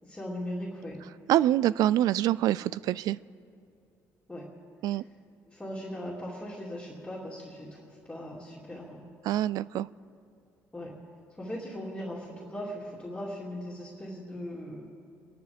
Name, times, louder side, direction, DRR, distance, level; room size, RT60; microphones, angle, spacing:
voice 1, 0.0-1.0 4.3-4.5 4.9-5.1 5.5-9.1 10.7-10.9 11.3-14.8, equal, 10° left, -6 dB, 2.5 m, -39 dB
voice 2, 1.3-3.2 4.8-5.0 9.3-9.9, right 13 dB, 70° right, 20 dB, 0.3 m, -25 dB
28.5 x 11.5 x 3.5 m, 2.4 s
cardioid pair, 105°, 7 cm